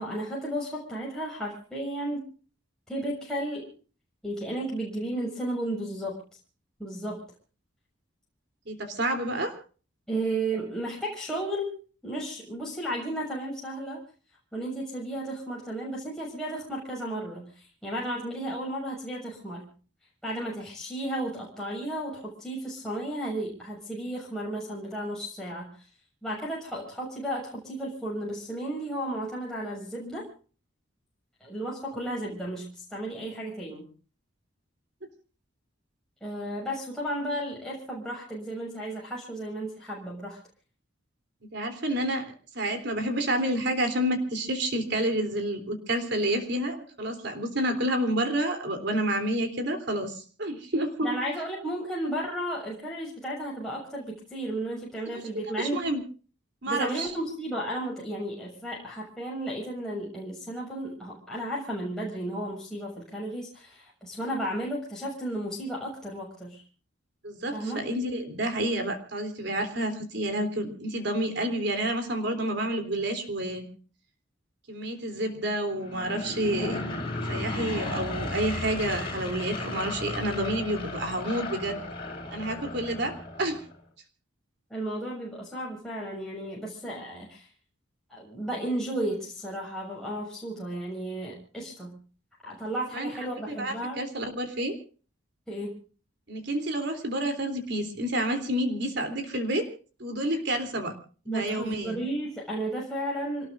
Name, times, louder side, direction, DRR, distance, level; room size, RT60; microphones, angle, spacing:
voice 1, 0.0-2.2 2.9-3.7 4.2-6.2 6.8-7.2 10.1-11.7 12.0-14.0 14.5-19.7 20.2-25.9 26.2-30.3 31.4-33.9 36.2-40.4 51.0-55.8 56.6-66.6 67.5-67.8 84.7-87.5 88.1-92.0 92.4-94.0 95.5-95.8 101.3-103.5, right 1 dB, 5° left, -5 dB, 6.7 m, -33 dB
voice 2, 8.7-9.5 41.5-51.2 55.6-56.0 56.6-57.1 67.2-73.6 74.7-76.8 77.3-81.8 82.3-83.1 83.4-83.6 92.9-93.1 93.5-94.7 96.3-99.7 100.0-100.9 101.3-101.9, right 1 dB, 60° right, 7 dB, 3.5 m, -29 dB
Aircraft / Engine, 75.7-83.7, left 2 dB, 25° left, 7.6 m, -35 dB
28.0 x 19.5 x 2.6 m, 0.39 s
head